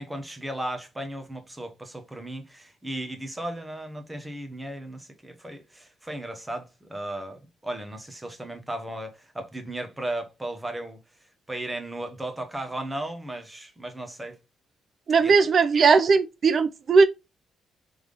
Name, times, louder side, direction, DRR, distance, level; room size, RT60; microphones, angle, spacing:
voice 1, 0.0-11.0 11.5-14.4 15.2-15.3, right 1 dB, 10° right, 1.0 m, -35 dB
voice 2, 15.1-17.0, right 5 dB, 50° right, 0.4 m, -18 dB
3.6 x 3.4 x 3.4 m
cardioid pair, 90°, 0 cm